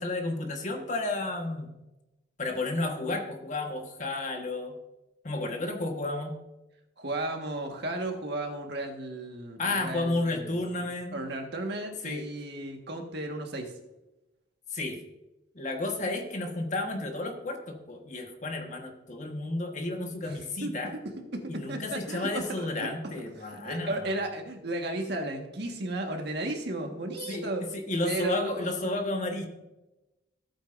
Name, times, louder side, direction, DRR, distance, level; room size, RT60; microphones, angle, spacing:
voice 1, 0.0-1.7 2.4-4.8 5.2-6.3 9.6-11.2 12.0-12.3 14.7-15.0 15.5-20.9 21.5-24.2 27.3-29.5, left 2 dB, 40° left, 3 dB, 1.4 m, -32 dB
voice 2, 7.0-13.7 20.2-20.7 21.3-23.1 23.6-27.6 28.0-28.7, right 2 dB, 55° right, 3 dB, 1.6 m, -34 dB
15.0 x 8.7 x 2.6 m, 0.98 s
head